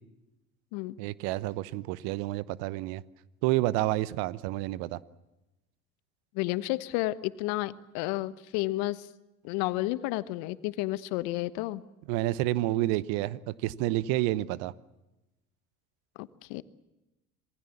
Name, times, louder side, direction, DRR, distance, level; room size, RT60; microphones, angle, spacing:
voice 1, 1.0-3.0 3.4-5.0 12.1-14.7, right 17 dB, 60° right, 18 dB, 1.0 m, -29 dB
voice 2, 6.3-9.1 9.4-11.8 16.2-16.6, left 18 dB, 60° left, 15 dB, 1.2 m, -31 dB
27.0 x 20.0 x 7.2 m, 0.99 s
hypercardioid pair, 70°, 42 cm